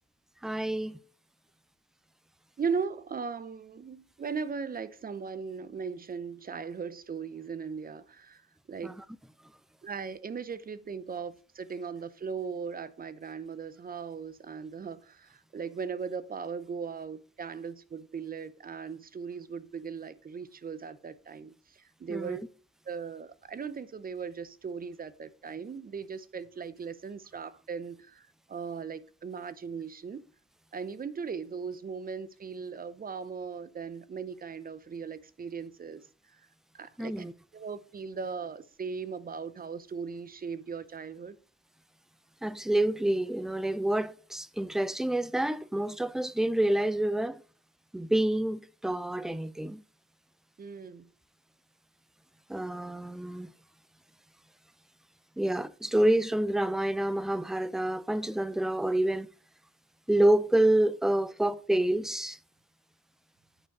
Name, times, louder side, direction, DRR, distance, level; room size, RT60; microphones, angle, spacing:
voice 1, 0.4-1.0 8.8-8.9 22.1-22.4 37.0-37.3 42.4-47.4 47.9-49.8 52.5-53.5 55.4-59.3 60.1-62.4, right 1 dB, ahead, 0.4 m, -28 dB
voice 2, 2.6-8.4 8.7-9.0 9.8-22.4 22.9-30.2 30.7-36.0 36.7-37.3 37.5-41.4 50.6-51.1, right 5 dB, 30° right, 0.7 m, -38 dB
8.8 x 4.6 x 4.7 m
cardioid pair, 105°, 29 cm